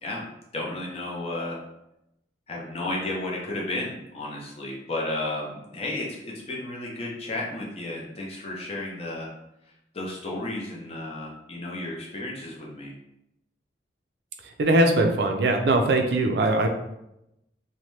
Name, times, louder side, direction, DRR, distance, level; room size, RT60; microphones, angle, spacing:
voice 1, 0.5-1.6 2.5-9.3 9.6-12.9, left 2 dB, 35° left, -3 dB, 0.6 m, -33 dB
voice 2, 14.4-16.7, right 2 dB, 60° right, 4 dB, 0.4 m, -21 dB
2.8 x 2.1 x 3.1 m, 0.85 s
head